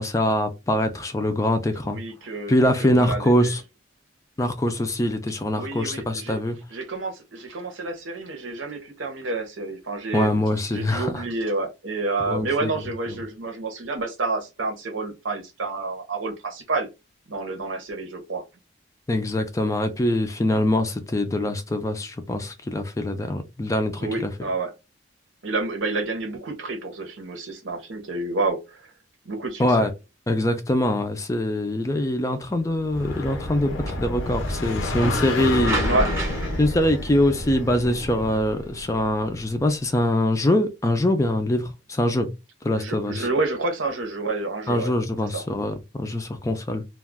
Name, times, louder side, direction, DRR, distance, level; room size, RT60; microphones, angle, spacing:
voice 1, 0.0-2.0 2.5-3.6 4.4-6.6 10.1-11.2 12.3-12.7 19.1-24.3 29.6-29.9 30.3-35.8 36.6-42.3 42.6-43.3 44.7-46.8, left 1 dB, 15° left, 0.3 m, -23 dB
voice 2, 1.8-3.5 5.5-6.4 6.7-10.3 10.7-16.9 17.3-18.4 24.0-24.7 25.4-28.8 29.2-29.9 35.8-36.1 42.8-44.9 45.3-45.4, right 3 dB, 85° right, 0.8 m, -29 dB
sound 1, 32.8-39.4, left 2 dB, 90° left, 0.6 m, -30 dB
sound 2, 32.9-38.4, right 2 dB, 15° right, 0.7 m, -33 dB
2.3 x 2.2 x 3.4 m
head